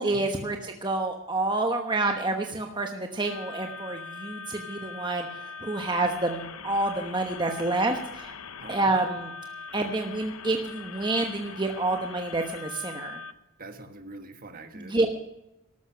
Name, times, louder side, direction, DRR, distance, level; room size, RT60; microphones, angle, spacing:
voice 1, 0.0-8.3 8.7-9.3 9.7-13.2 14.7-15.1, right 2 dB, 20° right, 3 dB, 1.1 m, -28 dB
sound 1, 3.3-13.3, left 5 dB, 85° left, 0.9 m, -42 dB
voice 2, 8.6-8.9 13.6-15.1, right 2 dB, 40° right, 7 dB, 1.5 m, -44 dB
13.5 x 12.5 x 5.8 m, 0.88 s
head